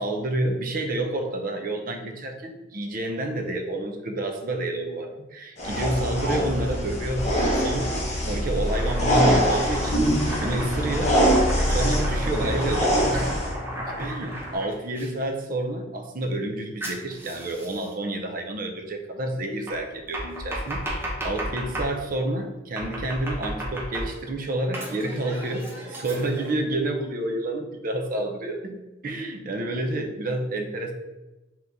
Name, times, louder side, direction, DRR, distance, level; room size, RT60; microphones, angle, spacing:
voice 1, 0.0-7.9 8.2-10.1 10.4-11.2 11.7-13.4 14.0-28.8 29.0-30.9, right 1 dB, 45° right, 3 dB, 0.6 m, -29 dB
sound 1, 5.6-13.5, equal, 35° left, 0.9 m, -23 dB
Domestic sounds home sounds, 8.7-15.1 16.8-17.9 19.7-21.9 22.8-24.3 24.7-26.5, equal, 10° right, 0.8 m, -34 dB
3.6 x 2.9 x 3.9 m, 1.1 s
head